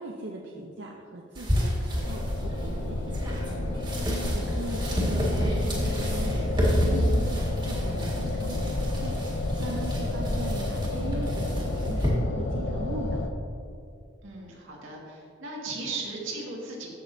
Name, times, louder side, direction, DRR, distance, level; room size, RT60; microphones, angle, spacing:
voice 1, 0.0-6.5 6.8-13.3, right 2 dB, 65° right, 0 dB, 0.6 m, -40 dB
sound 1, 1.3-12.1, equal, 25° right, 1.8 m, -30 dB
sound 2, 1.9-13.3, left 2 dB, 65° left, 0.6 m, -30 dB
voice 2, 14.2-16.9, right 3 dB, 80° right, -2 dB, 1.9 m, -37 dB
14.5 x 6.3 x 2.7 m, 2.5 s
head